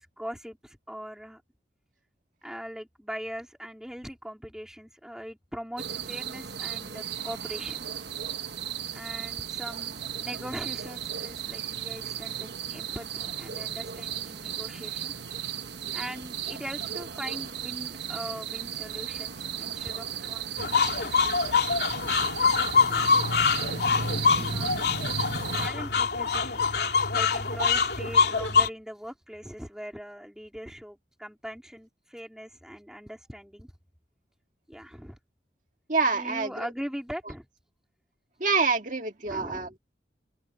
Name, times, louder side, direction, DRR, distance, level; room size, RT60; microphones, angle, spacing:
voice 1, 0.0-1.4 2.4-7.8 8.9-15.1 15.9-21.3 22.9-23.3 24.2-33.7 34.7-35.2 36.1-37.5 39.2-39.8, equal, 5° right, 3.6 m, -41 dB
sound 1, 5.8-25.7, right 8 dB, 70° right, 1.1 m, -35 dB
sound 2, 20.6-28.7, left 5 dB, 60° left, 3.2 m, -24 dB
voice 2, 35.9-36.7 38.4-39.8, right 4 dB, 45° right, 2.0 m, -26 dB
open air
head